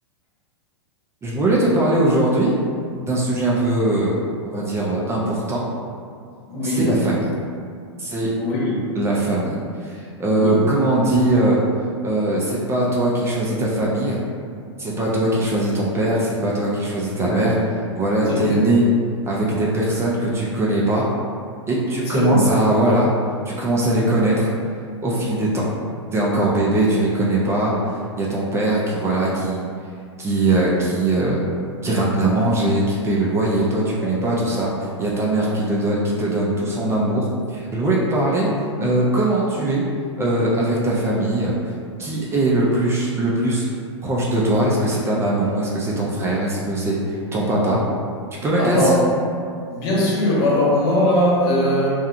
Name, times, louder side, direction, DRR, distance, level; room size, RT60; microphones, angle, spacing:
voice 1, 1.2-2.5 3.0-4.1 4.4-5.6 6.6-7.3 8.0-8.3 8.9-9.6 9.8-11.6 12.0-14.2 14.8-17.5 17.9-18.8 19.3-21.1 21.7-23.1 23.5-24.5 25.0-25.6 26.1-29.6 30.2-31.4 31.8-34.7 35.0-38.5 38.8-39.8 40.2-41.6 42.0-43.7 44.0-47.8 48.4-49.0, right 1 dB, 15° right, -5 dB, 0.4 m, -20 dB
voice 2, 6.5-6.9 8.4-8.8 10.3-10.7 17.1-17.5 18.3-18.6 22.1-22.5 34.0-34.3 48.6-49.0 49.7-51.9, left 1 dB, 55° left, -5 dB, 0.9 m, -20 dB
2.8 x 2.3 x 2.4 m, 2.3 s
hypercardioid pair, 115°, 16 cm